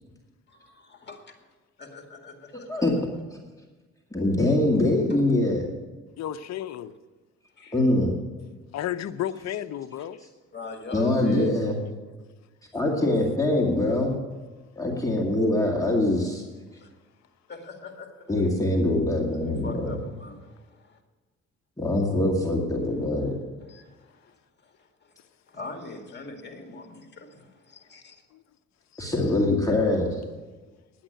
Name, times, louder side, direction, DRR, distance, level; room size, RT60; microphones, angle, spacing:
voice 1, 0.5-1.3 1.8-2.8 7.6-7.8 10.0-10.1 10.5-11.6 16.7-16.9 17.5-18.3 19.3-21.0 23.6-24.4 24.6-24.7 25.0-25.1 25.5-28.2, left 3 dB, 35° left, 4 dB, 2.1 m, -43 dB
voice 2, 2.5-2.9 3.3-3.4 4.1-5.7 7.7-8.2 10.9-11.8 12.7-14.1 14.8-16.4 18.3-20.0 21.8-23.4 29.0-30.2, left 1 dB, 10° left, -1 dB, 2.2 m, -23 dB
voice 3, 6.2-6.9 8.7-10.2 28.3-28.4 28.9-29.1, left 11 dB, 60° left, 10 dB, 0.7 m, -32 dB
10.5 x 8.7 x 9.1 m, 1.3 s
cardioid pair, 90°, 30 cm